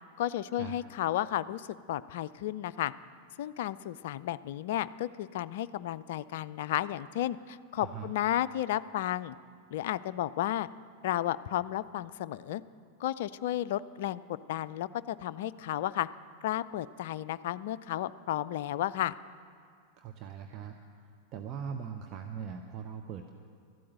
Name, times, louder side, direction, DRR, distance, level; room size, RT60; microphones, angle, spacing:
voice 1, 0.2-2.9 3.4-9.4 9.7-10.7 11.0-12.6 13.0-16.1 16.4-19.2, left 12 dB, 55° left, 16 dB, 0.3 m, -33 dB
voice 2, 7.8-8.1 20.0-20.8 21.3-23.3, right 7 dB, 35° right, 4 dB, 0.8 m, -40 dB
13.5 x 8.5 x 8.9 m, 2.2 s
figure-of-eight pair, 90°, 0 cm